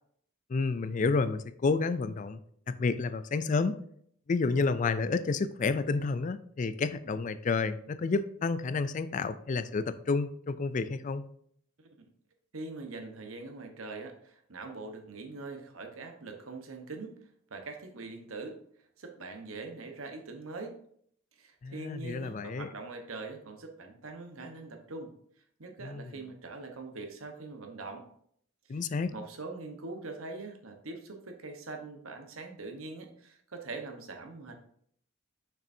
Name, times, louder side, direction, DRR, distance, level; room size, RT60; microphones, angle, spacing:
voice 1, 0.5-2.4 2.7-3.8 4.3-11.2 21.6-22.7 25.8-26.1 28.7-29.1, left 4 dB, 40° left, 12 dB, 0.3 m, -30 dB
voice 2, 12.5-17.1 17.5-18.6 19.0-20.8 21.3-25.1 25.6-28.1 28.7-28.8 29.1-34.6, right 3 dB, 90° right, 4 dB, 1.1 m, -43 dB
6.7 x 6.1 x 2.7 m, 0.64 s
head